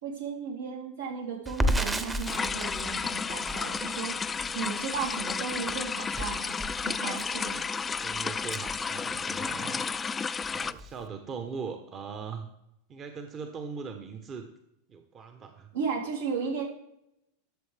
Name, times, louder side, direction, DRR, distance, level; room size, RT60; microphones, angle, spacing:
voice 1, 0.0-4.2 4.5-7.7 15.7-16.6, right 5 dB, 80° right, -4 dB, 3.4 m, -35 dB
Crackle, 1.5-9.5 9.9-10.0 10.3-11.0, equal, 10° right, 0.9 m, -34 dB
sound 1, 2.3-10.7, left 5 dB, 20° left, 0.4 m, -32 dB
voice 2, 7.8-9.9 10.4-12.5 12.9-14.4 14.9-15.7, right 5 dB, 35° right, 6 dB, 1.1 m, -40 dB
12.5 x 7.2 x 3.5 m, 0.81 s
hypercardioid pair, 90°, 0 cm